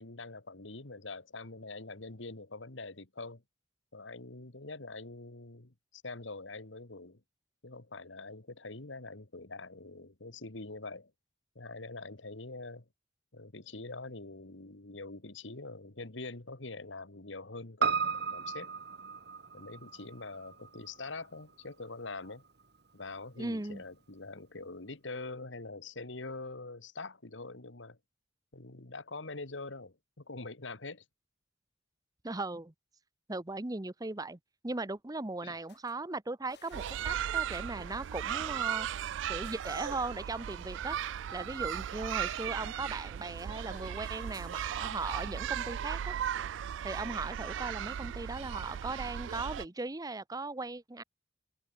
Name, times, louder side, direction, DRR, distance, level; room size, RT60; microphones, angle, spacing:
voice 1, 0.0-3.4 3.9-7.2 7.6-11.1 11.6-12.9 13.3-18.7 19.5-22.4 22.9-28.0 28.5-31.0 35.4-35.6, left 3 dB, 75° left, 1.9 m, -44 dB
Piano, 17.8-22.3 22.6-22.7, right 5 dB, 60° right, 1.7 m, -35 dB
voice 2, 23.4-23.8 32.2-32.7 33.3-38.9 39.3-41.0 41.3-46.2 46.8-51.0, right 2 dB, 20° right, 0.8 m, -38 dB
sound 1, 35.7-36.0 36.5-37.4 40.0-40.1 40.6-40.7 41.6-42.8 43.5-45.9, left 6 dB, 60° left, 6.0 m, -60 dB
sound 2, 36.7-49.6, right 9 dB, 75° right, 0.3 m, -36 dB
head